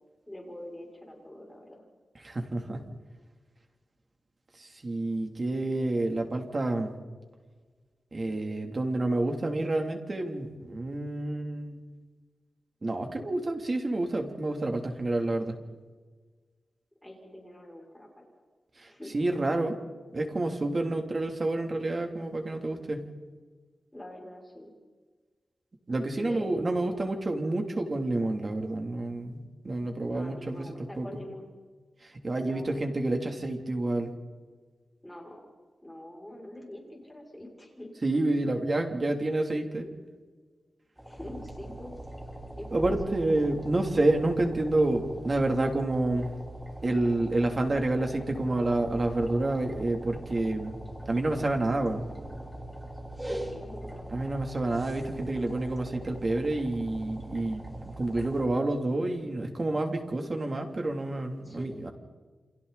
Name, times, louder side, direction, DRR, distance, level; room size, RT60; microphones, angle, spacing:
voice 1, 0.3-1.8 17.0-18.3 18.8-19.1 23.9-24.7 26.2-27.0 30.1-31.5 32.4-32.8 35.0-35.4 35.8-37.9 41.0-42.0 42.6-43.2 52.9-54.1 61.4-61.8, left 1 dB, 5° left, -2 dB, 6.8 m, -44 dB
voice 2, 2.1-2.8 4.6-6.9 8.1-11.8 12.8-15.5 18.8-19.7 20.1-23.0 25.9-31.1 32.0-34.1 38.0-39.9 42.7-46.3 46.8-50.8 51.1-52.0 54.1-61.9, right 2 dB, 35° right, 3 dB, 3.2 m, -29 dB
sound 1, 41.0-58.5, right 1 dB, 10° right, 3.6 m, -41 dB
29.5 x 27.5 x 4.2 m, 1.4 s
wide cardioid pair, 125°, 0 cm